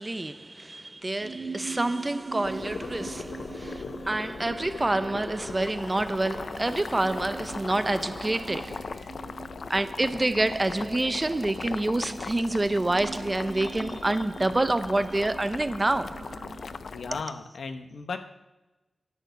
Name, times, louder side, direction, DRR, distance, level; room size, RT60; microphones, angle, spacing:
voice 1, 0.0-9.1 9.7-16.4, right 2 dB, 20° right, 0.5 m, -27 dB
sound 1, 1.2-17.3, right 4 dB, 65° right, 1.6 m, -44 dB
Boiling, 2.4-17.2, left 5 dB, 60° left, 0.4 m, -39 dB
voice 2, 16.9-18.2, left 4 dB, 80° left, 1.1 m, -35 dB
10.0 x 6.8 x 8.3 m
wide cardioid pair, 145°, 0 cm